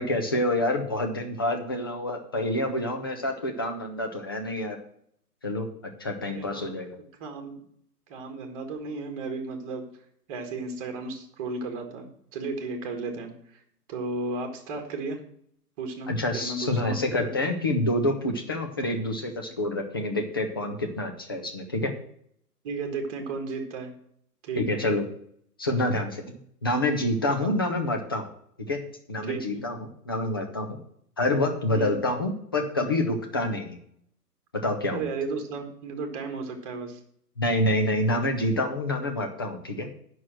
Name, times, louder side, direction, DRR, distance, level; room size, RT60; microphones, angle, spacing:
voice 1, 0.0-4.8 5.4-5.7 6.0-7.0 16.1-22.0 24.6-25.0 25.6-26.2 26.6-28.3 28.7-28.8 29.1-30.8 31.2-33.8 34.6-35.0 37.4-39.9, left 1 dB, 15° left, 4 dB, 0.6 m, -27 dB
voice 2, 6.2-6.8 7.2-7.6 8.1-9.9 10.3-13.3 13.9-15.2 15.8-17.0 22.6-23.9 24.4-24.8 27.4-27.5 29.2-29.6 31.7-32.0 34.9-37.0, right 3 dB, 20° right, 4 dB, 1.6 m, -34 dB
8.4 x 6.3 x 7.4 m, 0.67 s
hypercardioid pair, 150°, 48 cm